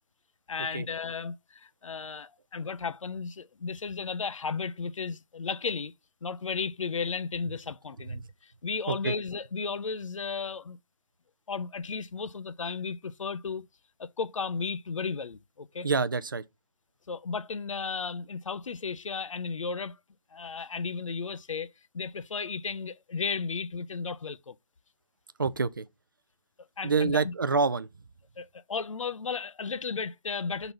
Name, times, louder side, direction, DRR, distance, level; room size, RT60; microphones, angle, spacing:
voice 1, 0.5-5.9 6.2-10.8 11.5-13.7 14.0-15.9 17.1-20.0 20.3-24.6 26.8-27.3 28.4-30.7, left 5 dB, 60° left, 0.5 m, -34 dB
voice 2, 15.8-16.4 25.4-25.9 26.8-27.9, right 4 dB, 35° right, 0.4 m, -27 dB
5.7 x 3.9 x 5.3 m
figure-of-eight pair, 155°, 19 cm